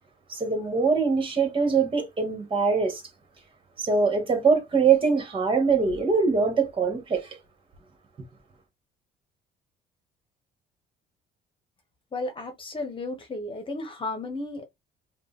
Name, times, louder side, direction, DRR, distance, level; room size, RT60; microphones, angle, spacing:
voice 1, 0.3-3.0 3.8-7.3, right 5 dB, 30° right, 2.0 m, -23 dB
voice 2, 12.1-14.6, left 2 dB, 30° left, 1.4 m, -33 dB
5.2 x 2.6 x 3.5 m
cardioid pair, 110°, 17 cm